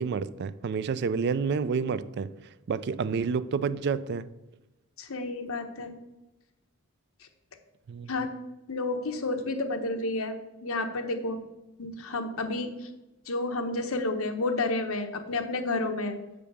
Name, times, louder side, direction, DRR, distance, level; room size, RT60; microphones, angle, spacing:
voice 1, 0.0-2.3 2.7-4.3 7.9-8.1, right 5 dB, 50° right, 0.3 m, -29 dB
voice 2, 5.0-5.9 8.1-8.3 8.7-11.4 11.8-12.9 13.3-16.1, left 2 dB, 75° left, 1.0 m, -30 dB
6.7 x 5.2 x 6.9 m
head